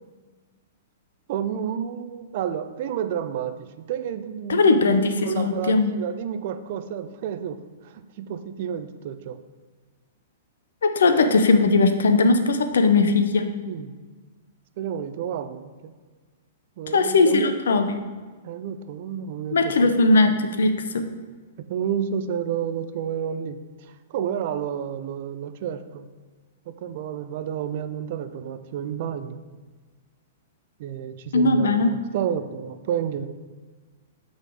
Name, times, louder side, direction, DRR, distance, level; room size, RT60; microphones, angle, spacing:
voice 1, 1.3-4.8 5.2-9.4 13.7-13.9 14.8-15.9 16.8-17.5 18.4-19.9 21.6-26.1 26.7-29.4 30.8-33.3, right 8 dB, 50° right, 10 dB, 0.5 m, -30 dB
voice 2, 4.5-5.9 10.8-13.5 16.9-17.9 19.5-21.1 31.3-31.9, left 3 dB, 70° left, 8 dB, 0.7 m, -19 dB
6.5 x 4.1 x 6.2 m, 1.4 s
figure-of-eight pair, 110°, 0 cm